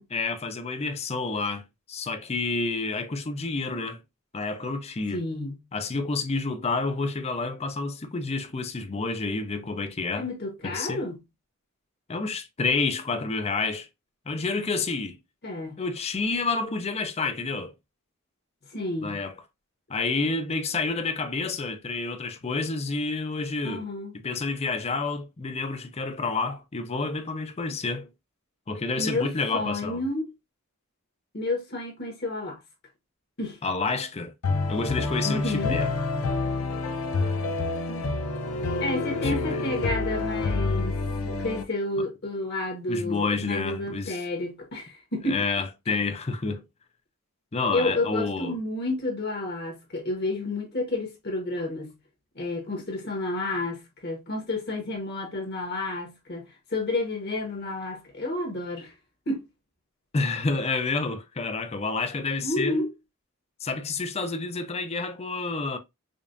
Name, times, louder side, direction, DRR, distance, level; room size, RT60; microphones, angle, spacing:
voice 1, 0.1-4.0 4.3-5.2 5.7-10.2 10.6-11.0 12.1-13.9 14.3-15.2 15.8-17.7 19.0-19.4 19.9-23.9 24.2-28.1 28.7-30.0 33.6-34.3 34.7-35.9 39.2-39.6 42.9-44.2 45.3-46.6 47.5-48.6 60.1-62.8 63.6-65.8, left 3 dB, 30° left, 0.5 m, -29 dB
voice 2, 5.1-5.6 10.1-11.2 15.4-15.8 18.7-19.2 23.6-24.2 29.0-29.3 29.5-30.3 31.3-32.6 33.4-33.6 35.2-35.8 37.9-38.0 38.8-45.4 45.9-46.0 47.7-51.9 52.3-58.9 59.3-59.4 62.4-62.9, left 2 dB, 50° left, 1.3 m, -30 dB
sound 1, 34.4-41.6, left 3 dB, 75° left, 0.6 m, -28 dB
5.1 x 2.4 x 2.5 m
head